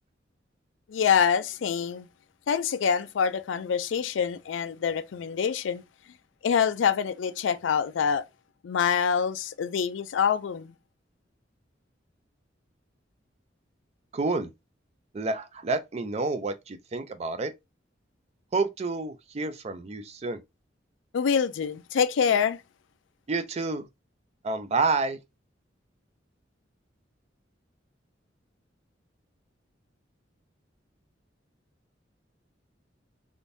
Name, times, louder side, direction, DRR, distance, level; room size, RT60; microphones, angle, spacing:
voice 1, 0.9-2.1 2.5-5.8 6.4-8.2 8.6-10.7 21.1-22.6, left 7 dB, 90° left, 0.4 m, -25 dB
voice 2, 14.1-14.5 15.1-17.5 18.5-20.4 23.3-23.9 24.4-25.2, right 3 dB, 35° right, 0.4 m, -29 dB
3.5 x 2.6 x 2.6 m
head